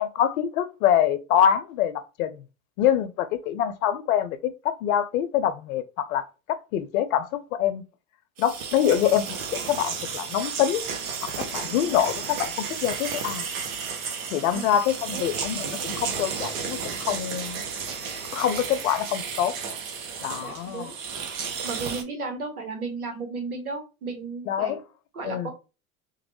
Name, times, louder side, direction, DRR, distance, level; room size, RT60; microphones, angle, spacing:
voice 1, 0.0-2.4 2.8-7.8 8.4-9.2 9.5-10.8 11.2-13.5 14.3-17.6 18.3-19.5 20.2-20.9 24.5-24.8 25.2-25.5, left 10 dB, 70° left, 0.6 m, -25 dB
sound 1, 8.4-22.0, right 6 dB, 70° right, 0.9 m, -33 dB
voice 2, 20.4-20.9 21.6-24.8 25.1-25.5, right 4 dB, 90° right, 1.1 m, -34 dB
3.0 x 2.4 x 3.1 m
hypercardioid pair, 85°, 43 cm